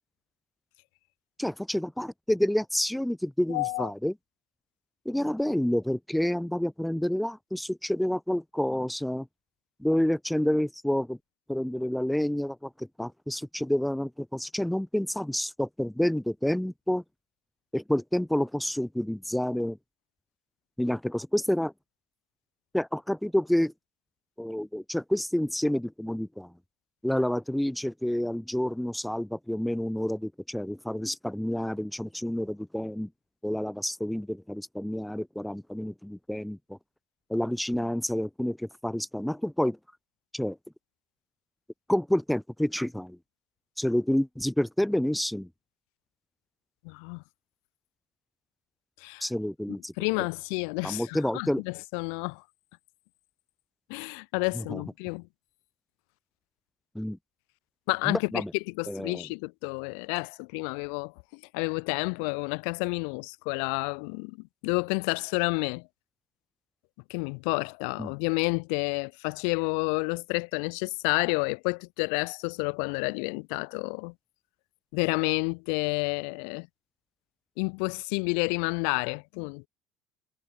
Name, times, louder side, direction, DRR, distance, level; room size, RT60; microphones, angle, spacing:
voice 1, 1.4-4.1 5.1-9.3 9.8-11.2 11.5-17.0 17.7-19.8 20.8-21.7 22.7-23.7 24.4-26.5 27.0-33.1 33.4-36.8 37.3-39.8 40.3-40.6 41.9-43.2 43.8-45.5 49.2-49.9 50.8-51.6 54.5-54.8 57.0-57.2 58.0-58.5 58.9-59.3 68.0-68.1, left 1 dB, 5° left, 0.3 m, -29 dB
voice 2, 3.5-3.9 46.8-47.2 49.0-49.2 50.0-52.4 53.9-55.3 57.9-61.1 61.5-65.9 67.1-74.1 74.9-76.7 77.6-79.7, left 40 dB or more, 60° left, 0.6 m, -30 dB
figure-of-eight pair, 60°, 0 cm